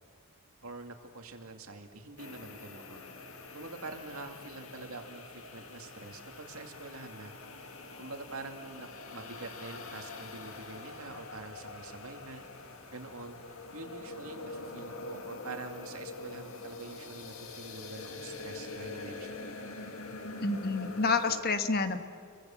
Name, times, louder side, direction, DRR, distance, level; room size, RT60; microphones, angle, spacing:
voice 1, 0.6-3.1 3.5-7.3 7.6-7.7 8.0-12.4 12.9-13.4 13.7-19.6, right 3 dB, 80° right, 4 dB, 2.5 m, -45 dB
sound 1, 2.2-21.4, left 3 dB, 70° left, 2.1 m, -45 dB
voice 2, 20.4-22.0, left 4 dB, 45° left, 8 dB, 1.3 m, -28 dB
29.5 x 23.5 x 7.3 m, 2.3 s
head